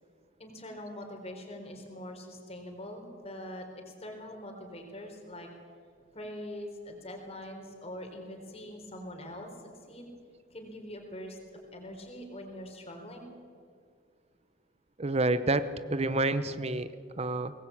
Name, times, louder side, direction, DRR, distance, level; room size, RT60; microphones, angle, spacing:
voice 1, 0.4-5.5 6.1-10.1 10.5-13.3, left 1 dB, 30° left, 3 dB, 4.0 m, -43 dB
voice 2, 15.0-16.9 17.2-17.5, right 2 dB, 35° right, 13 dB, 0.8 m, -28 dB
22.5 x 19.0 x 8.6 m, 2.2 s
head